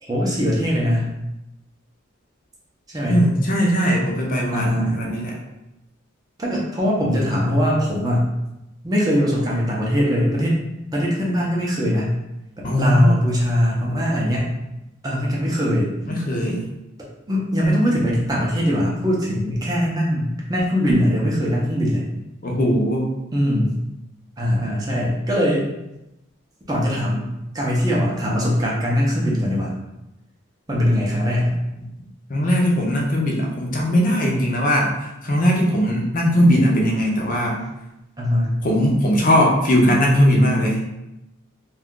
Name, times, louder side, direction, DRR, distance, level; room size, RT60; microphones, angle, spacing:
voice 1, 0.0-1.1 2.9-3.3 4.5-5.0 6.4-8.3 8.8-10.6 10.9-12.1 12.6-14.5 15.0-15.9 17.3-22.0 23.3-23.7 24.4-25.7 26.7-29.7 30.7-31.6 38.2-38.5, equal, 15° right, -4 dB, 0.6 m, -21 dB
voice 2, 3.1-5.4 12.6-13.1 16.1-16.6 22.4-23.1 32.3-37.6 38.6-40.8, equal, 40° left, -1 dB, 0.5 m, -19 dB
2.7 x 2.3 x 3.6 m, 0.91 s
head